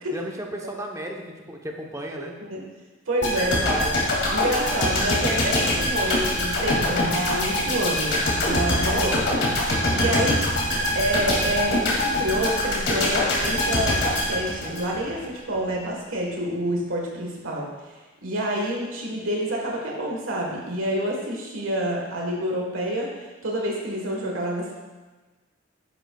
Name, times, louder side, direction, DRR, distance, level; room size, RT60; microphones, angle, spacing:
voice 1, 0.1-2.4 3.4-4.0 8.9-9.5 10.0-10.3, right 1 dB, 15° right, 1 dB, 0.8 m, -34 dB
voice 2, 3.1-3.6 4.3-9.4 9.7-10.4 10.9-17.9 18.2-24.7, right 1 dB, 80° right, -1 dB, 1.4 m, -28 dB
sound 1, 3.2-15.2 15.5-15.7, left 1 dB, 55° left, 2.3 m, -24 dB
9.8 x 9.4 x 2.3 m, 1.3 s
head